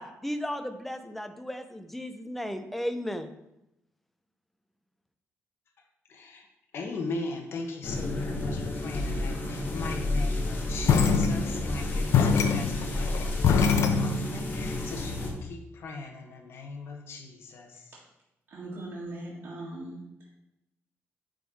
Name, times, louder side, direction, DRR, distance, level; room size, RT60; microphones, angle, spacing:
voice 1, 0.0-3.3, equal, 5° left, 7 dB, 0.5 m, -35 dB
voice 2, 6.1-6.5 6.7-17.9, left 3 dB, 55° left, 1 dB, 1.1 m, -39 dB
sound 1, 7.8-15.3, left 2 dB, 40° left, 1.3 m, -31 dB
sound 2, 10.9-11.8 12.1-14.5, left 6 dB, 75° left, 0.7 m, -23 dB
voice 3, 18.5-20.3, right 1 dB, 55° right, -8 dB, 1.7 m, -40 dB
9.8 x 3.8 x 4.1 m, 0.86 s
wide cardioid pair, 180°, 5 cm